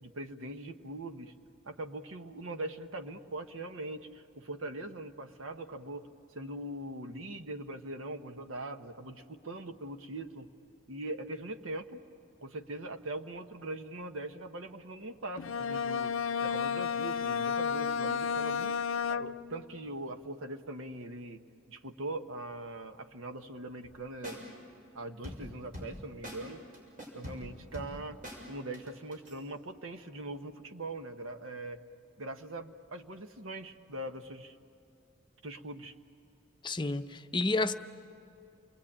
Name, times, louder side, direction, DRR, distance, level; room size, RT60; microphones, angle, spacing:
voice 1, 0.0-1.3 1.6-10.5 10.9-12.0 12.4-16.1 16.4-18.8 19.1-24.4 24.9-26.6 27.1-28.2 28.5-31.8 32.2-34.6 35.4-35.9, right 2 dB, 85° right, 1.2 m, -41 dB
Bowed string instrument, 15.4-19.6, left 6 dB, 75° left, 0.5 m, -32 dB
sound 1, 23.8-24.0 24.2-24.4 25.2-26.0 26.2-26.4 26.7-28.4 28.7-29.4, equal, 45° right, 6.6 m, -43 dB
voice 2, 36.6-37.7, left 2 dB, 25° left, 0.7 m, -30 dB
29.5 x 21.5 x 8.7 m
head